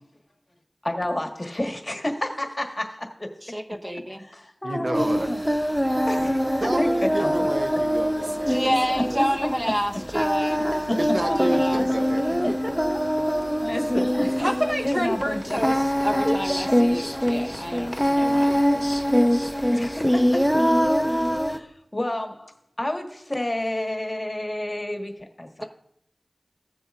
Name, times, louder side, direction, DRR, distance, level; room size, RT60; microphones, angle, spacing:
voice 1, 0.8-3.3 4.2-5.4 6.1-6.9 7.2-7.5 8.5-8.6 10.5-10.6 10.9-11.0 11.7-11.8 13.6-14.3 14.8-15.6 19.6-20.4 21.5-25.6, left 1 dB, 30° left, 3 dB, 1.4 m, -30 dB
voice 2, 3.4-4.2 8.5-10.8 11.2-11.8 14.4-18.6, equal, 25° right, 1 dB, 1.0 m, -28 dB
voice 3, 4.6-5.3 6.6-9.2 11.0-12.6, right 1 dB, 60° right, 7 dB, 0.6 m, -31 dB
Singing, 4.9-21.6, equal, ahead, 0.6 m, -23 dB
16.0 x 6.9 x 2.5 m, 0.73 s
wide cardioid pair, 50°, 0 cm